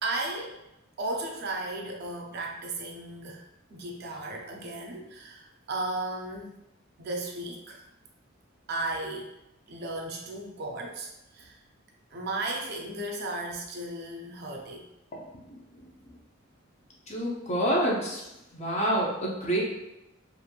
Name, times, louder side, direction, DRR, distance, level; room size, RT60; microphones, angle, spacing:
voice 1, 0.0-0.6 1.0-3.5 3.7-6.5 7.0-7.8 8.7-9.3 9.7-11.6 12.1-14.9, right 2 dB, 50° right, 1 dB, 0.4 m, -35 dB
voice 2, 15.5-15.8 17.1-18.2 18.5-19.6, right 1 dB, 35° left, -3 dB, 0.6 m, -28 dB
2.9 x 2.5 x 2.2 m, 0.90 s
head